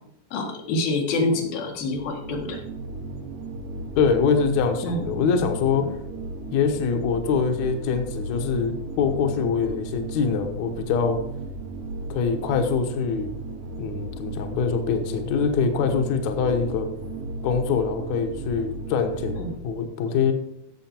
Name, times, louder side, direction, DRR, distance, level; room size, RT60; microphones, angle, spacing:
voice 1, 0.3-2.6 4.8-5.1 5.8-5.9 19.4-19.5, left 2 dB, 90° left, 1 dB, 3.6 m, -26 dB
sound 1, 1.6-19.6, right 2 dB, 65° right, 2.5 m, -35 dB
voice 2, 4.0-5.9 6.5-11.2 12.1-13.3 13.8-16.9 17.4-19.4 19.6-20.3, left 6 dB, 65° left, 5 dB, 2.1 m, -24 dB
15.5 x 6.3 x 4.4 m, 0.80 s
omnidirectional pair, 4.1 m